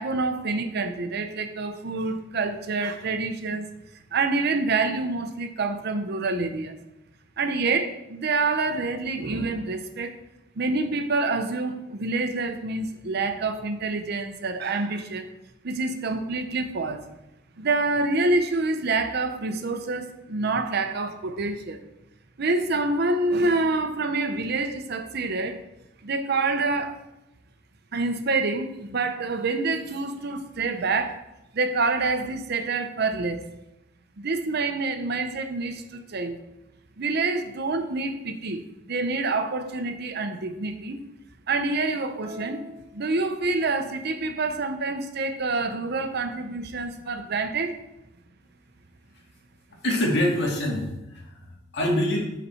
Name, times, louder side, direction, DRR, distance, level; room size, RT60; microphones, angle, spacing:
voice 1, 0.0-3.7 4.1-6.8 7.4-10.1 10.6-15.3 15.6-17.1 17.6-21.8 22.4-25.6 26.0-27.0 27.9-31.2 31.5-33.4 34.2-36.4 37.0-41.0 41.5-42.6 42.9-47.8, right 3 dB, 60° right, 8 dB, 0.7 m, -27 dB
sound 1, 42.2-44.0, right 1 dB, 30° right, 1.0 m, -46 dB
voice 2, 49.7-51.5 51.7-52.3, left 1 dB, 65° left, -2 dB, 2.0 m, -25 dB
9.8 x 4.1 x 4.3 m, 0.90 s
head